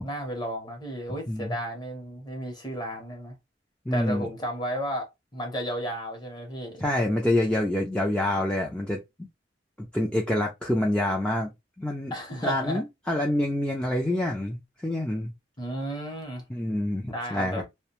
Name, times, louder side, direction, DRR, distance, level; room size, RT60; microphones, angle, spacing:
voice 1, 0.0-3.4 3.9-6.8 12.1-12.8 15.6-16.4 17.1-17.6, equal, 25° left, 0.8 m, -33 dB
voice 2, 3.9-4.3 6.8-9.3 9.8-11.5 11.8-12.1 12.4-15.3 16.5-17.6, left 1 dB, 5° left, 0.4 m, -27 dB
2.4 x 2.1 x 2.9 m
head